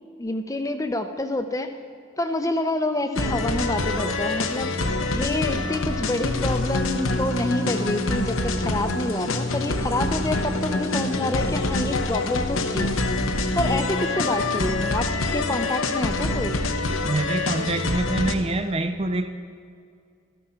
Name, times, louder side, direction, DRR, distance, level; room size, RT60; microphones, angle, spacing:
voice 1, 0.2-1.8 2.2-4.7 5.1-12.9 13.5-16.6, left 1 dB, 15° left, 8 dB, 0.6 m, -27 dB
sound 1, 3.1-18.3, left 2 dB, 70° left, 0.9 m, -26 dB
voice 2, 17.1-19.4, right 2 dB, 25° right, 9 dB, 0.4 m, -25 dB
13.5 x 12.5 x 5.7 m, 2.3 s
head